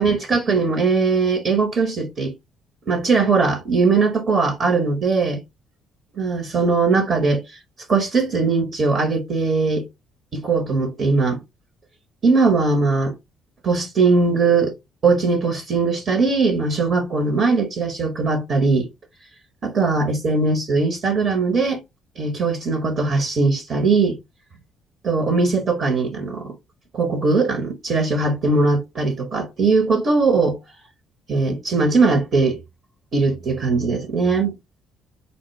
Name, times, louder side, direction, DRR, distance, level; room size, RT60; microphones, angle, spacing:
voice 1, 0.0-2.3 2.9-5.4 6.2-7.4 7.9-9.9 10.3-11.4 12.2-13.2 13.6-14.7 15.0-18.9 19.6-21.8 22.2-24.2 25.0-26.5 26.9-30.6 31.3-32.6 33.1-34.5, right 4 dB, 55° right, 1.1 m, -20 dB
4.3 x 2.1 x 3.2 m
supercardioid pair, 65°, 0 cm